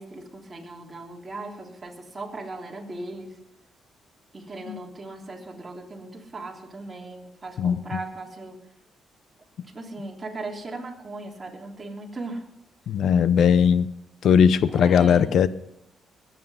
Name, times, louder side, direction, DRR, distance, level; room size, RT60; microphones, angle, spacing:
voice 1, 0.0-3.4 4.3-8.6 9.7-12.4 14.7-15.3, right 2 dB, 25° right, 0 dB, 3.3 m, -38 dB
voice 2, 12.9-13.9 14.2-15.5, left 7 dB, 70° left, 16 dB, 0.8 m, -18 dB
21.0 x 8.4 x 5.6 m, 0.84 s
cardioid pair, 105°, 0 cm